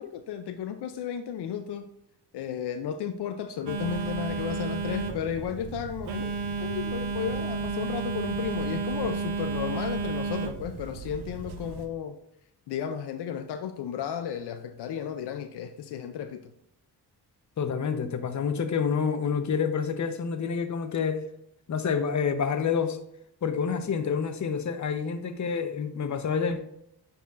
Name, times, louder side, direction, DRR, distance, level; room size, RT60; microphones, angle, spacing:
voice 1, 0.0-1.9 2.3-12.2 12.7-16.4, left 8 dB, 75° left, 0.5 m, -34 dB
Telephone, 3.7-11.9, right 4 dB, 70° right, 0.8 m, -32 dB
voice 2, 17.6-21.2 21.7-23.0 23.4-26.6, left 6 dB, 45° left, 0.8 m, -28 dB
9.3 x 4.2 x 2.5 m
cardioid pair, 90°, 40 cm